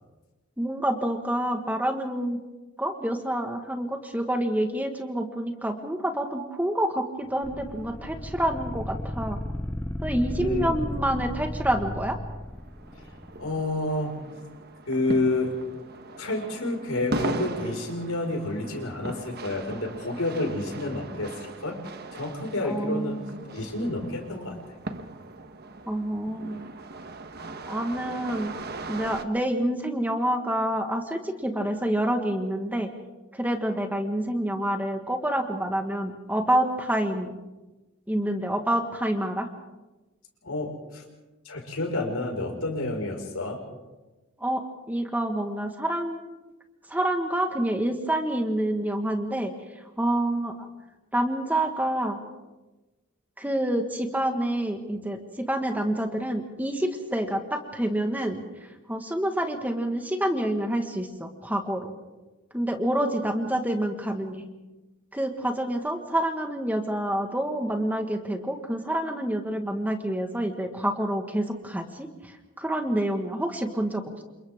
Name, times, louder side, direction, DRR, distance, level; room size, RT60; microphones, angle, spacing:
voice 1, 0.6-2.4 2.8-9.4 10.0-12.2 22.7-23.4 25.9-26.6 27.7-28.5 28.9-32.9 33.3-37.3 38.1-39.5 44.4-44.6 44.9-46.2 46.9-49.5 50.0-50.7 51.1-52.2 53.4-58.4 58.9-61.9 62.5-64.4 65.1-74.0, right 1 dB, 10° right, 4 dB, 1.6 m, -27 dB
sound 1, 7.4-13.6, left 1 dB, 10° left, 0.6 m, -34 dB
voice 2, 10.4-10.7 13.4-14.1 14.9-15.6 16.2-21.8 22.1-23.2 23.5-24.6 40.4-41.0 41.5-43.6, left 2 dB, 85° left, 2 dB, 5.4 m, -29 dB
sound 2, 12.3-29.2, right 2 dB, 50° right, 1.2 m, -39 dB
29.0 x 27.5 x 3.7 m, 1.1 s
head